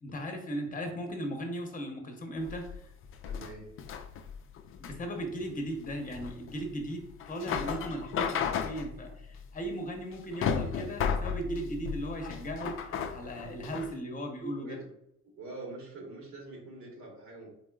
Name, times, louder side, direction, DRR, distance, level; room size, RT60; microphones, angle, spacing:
voice 1, 0.0-2.6 4.8-14.8, right 1 dB, 25° left, 4 dB, 0.9 m, -37 dB
sound 1, 2.4-14.0, left 7 dB, 45° left, 0.4 m, -35 dB
voice 2, 3.2-3.7 14.6-14.9 15.4-17.5, right 2 dB, 60° right, 0 dB, 1.3 m, -44 dB
4.0 x 3.6 x 2.3 m, 0.79 s
cardioid pair, 95°, 32 cm